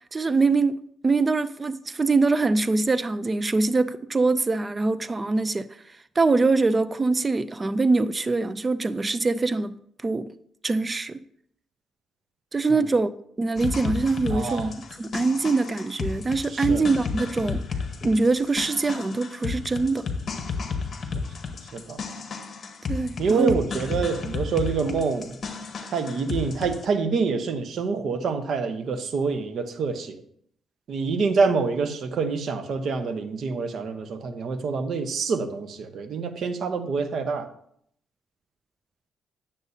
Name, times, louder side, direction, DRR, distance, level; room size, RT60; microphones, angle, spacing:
voice 1, 0.1-0.8 1.0-9.8 10.0-10.3 10.6-11.2 12.5-13.1 13.4-17.6 18.0-20.1 22.9-23.5, right 3 dB, 25° right, 0.3 m, -23 dB
sound 1, 13.6-26.8, left 5 dB, 45° left, 1.2 m, -33 dB
voice 2, 14.3-14.7 16.5-16.8 21.7-22.0 23.2-25.4 25.9-30.2 30.9-37.5, right 4 dB, 60° right, 0.9 m, -26 dB
9.6 x 7.1 x 2.7 m
cardioid pair, 90°, 0 cm